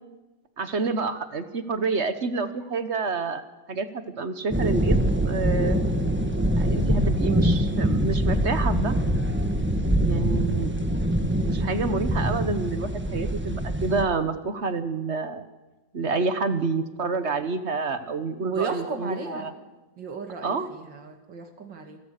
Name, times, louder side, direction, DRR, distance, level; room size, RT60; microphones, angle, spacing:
voice 1, 0.6-3.4 3.7-5.0 5.2-5.8 6.6-8.9 10.0-10.7 11.5-15.5 15.9-19.5 20.4-20.7, right 4 dB, 45° right, 11 dB, 1.2 m, -28 dB
sound 1, 4.5-14.0, right 1 dB, 5° right, 1.3 m, -24 dB
voice 2, 18.4-19.5 20.0-22.0, right 5 dB, 80° right, 6 dB, 2.8 m, -33 dB
28.0 x 14.5 x 6.7 m, 1.1 s
omnidirectional pair, 1.9 m